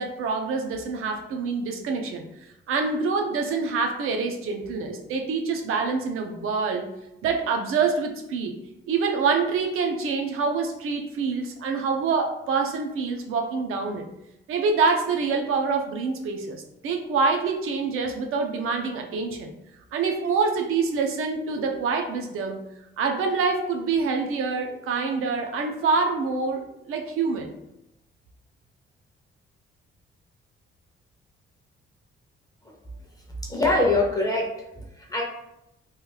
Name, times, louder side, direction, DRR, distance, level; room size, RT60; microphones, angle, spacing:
voice 1, 0.0-2.3 2.7-6.9 7.2-8.6 8.9-14.1 14.5-19.5 19.9-22.6 23.0-27.5, right 4 dB, 85° right, 4 dB, 0.6 m, -26 dB
voice 2, 33.5-35.2, left 2 dB, 15° left, -1 dB, 0.4 m, -24 dB
3.1 x 2.2 x 3.2 m, 0.86 s
cardioid pair, 160°, 21 cm